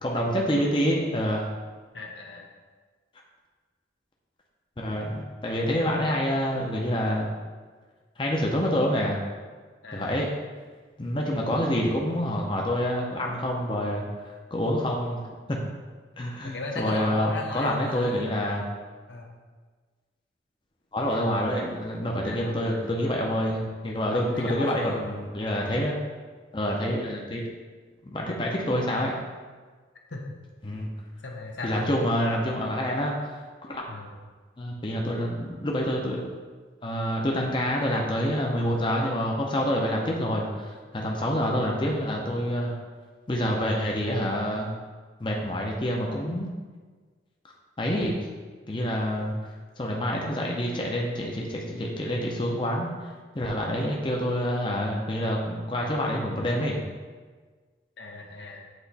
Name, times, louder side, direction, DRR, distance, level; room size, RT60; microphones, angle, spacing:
voice 1, 0.0-1.5 4.8-7.3 8.2-9.2 9.9-10.3 11.0-14.1 14.5-15.2 15.5-15.6 16.2-18.7 20.9-26.0 26.5-27.4 28.0-29.1 30.6-30.9 31.6-34.0 34.6-36.2 36.8-40.7 41.0-42.7 43.3-44.7 45.2-46.5 47.8-48.2 48.7-49.4 49.8-52.9 53.3-56.8, equal, 25° left, -1 dB, 0.7 m, -27 dB
voice 2, 1.9-2.4 9.8-10.3 16.4-18.3 19.1-19.4 21.2-21.3 22.2-22.8 24.1-25.1 26.8-26.9 30.1-30.3 31.2-31.9 33.9-34.1 41.8-42.0 53.6-53.7 58.0-58.6, left 3 dB, 80° left, 1 dB, 0.8 m, -36 dB
8.0 x 3.1 x 4.1 m, 1.4 s
head